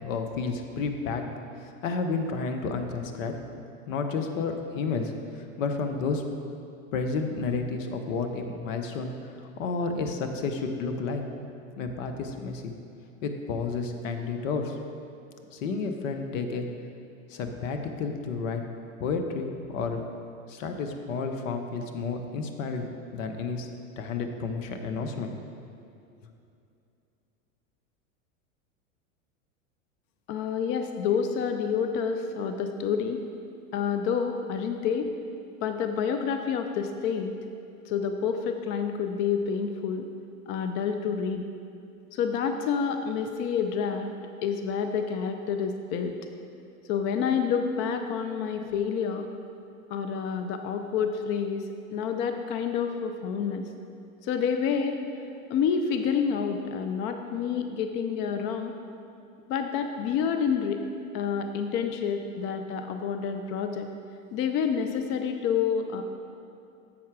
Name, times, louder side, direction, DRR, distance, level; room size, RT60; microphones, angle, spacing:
voice 1, 0.0-1.3 1.8-3.3 3.9-6.2 6.9-9.1 9.4-11.2 11.8-12.7 13.2-14.8 15.5-16.7 17.3-18.6 19.0-20.0 20.5-23.7 24.0-25.3, left 4 dB, 65° left, 5 dB, 0.9 m, -31 dB
voice 2, 30.3-33.3 33.7-35.1 35.6-37.4 37.9-40.1 40.5-41.5 42.1-44.1 44.4-46.2 46.9-49.3 49.9-53.7 54.2-55.0 55.5-58.7 59.5-60.8 61.1-63.9 64.3-66.0, left 6 dB, 30° left, 6 dB, 0.4 m, -28 dB
7.3 x 5.6 x 4.7 m, 2.6 s
hypercardioid pair, 105°, 41 cm